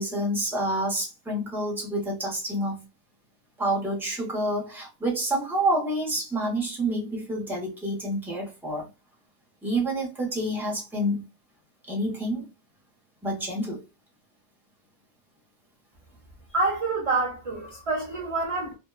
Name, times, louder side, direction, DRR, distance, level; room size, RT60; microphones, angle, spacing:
voice 1, 0.0-2.8 3.6-8.9 9.6-11.2 11.9-12.5 13.2-13.8, right 1 dB, ahead, 0.7 m, -28 dB
voice 2, 16.5-18.8, right 3 dB, 40° right, 0.5 m, -27 dB
2.5 x 2.1 x 2.2 m
omnidirectional pair, 1.2 m